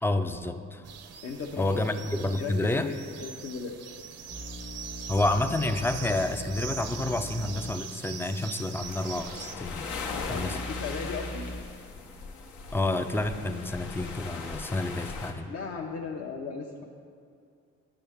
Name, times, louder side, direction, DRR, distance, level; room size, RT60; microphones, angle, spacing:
voice 1, 0.0-0.8 1.6-2.9 5.1-9.9 10.3-10.6 12.7-15.5, left 2 dB, 10° left, 9 dB, 0.3 m, -29 dB
sound 1, 0.8-9.5, right 7 dB, 55° right, 0.6 m, -42 dB
voice 2, 1.2-2.0 2.3-2.9 3.2-3.8 10.3-11.5 15.5-16.8, left 5 dB, 50° left, 0 dB, 0.7 m, -36 dB
sound 2, 4.3-7.8 8.1-8.2 8.9-11.6, left 1 dB, 30° left, 1.0 m, -41 dB
sound 3, 8.8-15.3, left 4 dB, 75° left, 0.9 m, -39 dB
10.5 x 6.2 x 3.5 m, 2.4 s
cardioid pair, 90°, 30 cm